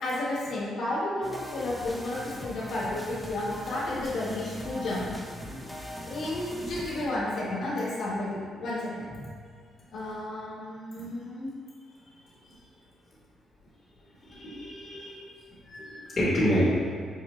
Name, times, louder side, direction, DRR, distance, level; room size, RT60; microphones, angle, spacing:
voice 1, 0.0-5.1 5.4-5.7 6.1-9.3 9.9-11.5, left 1 dB, 75° left, -8 dB, 1.1 m, -32 dB
sound 1, 1.2-7.0, equal, 5° right, 0.5 m, -41 dB
voice 2, 14.2-15.2 15.6-16.6, equal, 35° left, -7 dB, 1.0 m, -28 dB
5.3 x 2.2 x 3.0 m, 2.1 s
cardioid pair, 90°, 0 cm